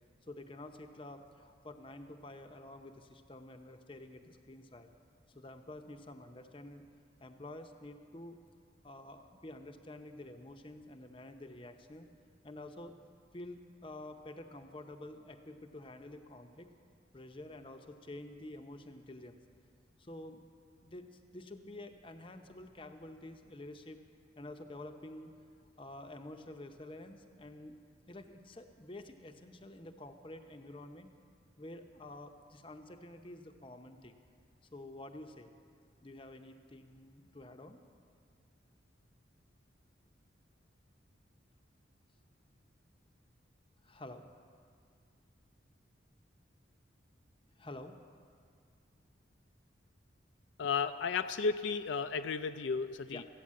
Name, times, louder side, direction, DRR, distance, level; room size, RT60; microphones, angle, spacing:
voice 1, 0.3-4.9 5.3-6.8 7.2-8.4 8.8-12.1 12.4-13.0 13.3-16.7 17.1-19.4 20.0-20.4 20.8-24.0 24.4-25.3 25.8-27.8 28.1-31.1 31.6-34.2 34.7-35.5 36.0-37.8 43.8-44.2 47.6-48.0 53.0-53.3, left 1 dB, 25° left, 7 dB, 0.7 m, -49 dB
voice 2, 50.6-53.2, left 5 dB, 70° left, 9 dB, 0.4 m, -33 dB
14.5 x 9.1 x 7.5 m, 2.3 s
head